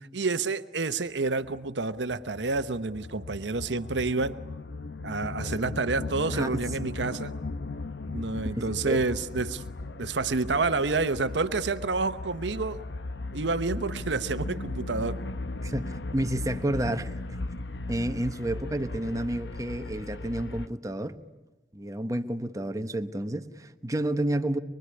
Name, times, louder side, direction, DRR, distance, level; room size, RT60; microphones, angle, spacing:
voice 1, 0.1-4.4 5.0-7.3 8.1-9.6 10.0-12.8 13.3-15.2, right 3 dB, 90° right, 1.0 m, -29 dB
sound 1, 1.4-20.7, left 2 dB, 80° left, 0.9 m, -37 dB
voice 2, 5.4-5.7 6.3-6.6 8.6-9.0 15.6-17.1 17.9-21.2 21.7-24.6, right 1 dB, 20° right, 1.0 m, -30 dB
24.0 x 23.5 x 9.7 m
head